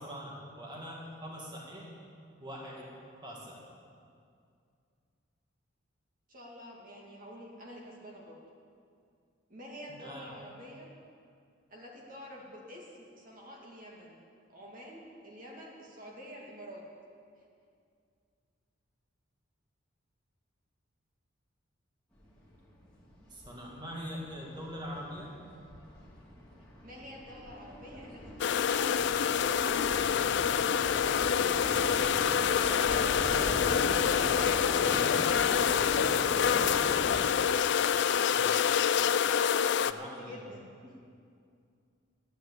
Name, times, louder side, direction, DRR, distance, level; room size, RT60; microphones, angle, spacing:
voice 1, 0.0-1.9 2.4-3.6 9.9-10.3 23.3-25.4 34.8-35.3 38.3-38.6 39.7-40.4, equal, 20° right, -3 dB, 2.1 m, -43 dB
voice 2, 6.3-8.4 9.5-10.9 11.7-14.2 14.5-16.8 26.8-30.4 39.7-40.9, equal, 45° right, -2 dB, 2.1 m, -48 dB
sound 1, 22.1-37.2, left 1 dB, 5° left, 3.0 m, -40 dB
sound 2, 28.4-39.9, left 8 dB, 60° left, 0.4 m, -27 dB
12.5 x 10.0 x 8.3 m, 2.3 s
head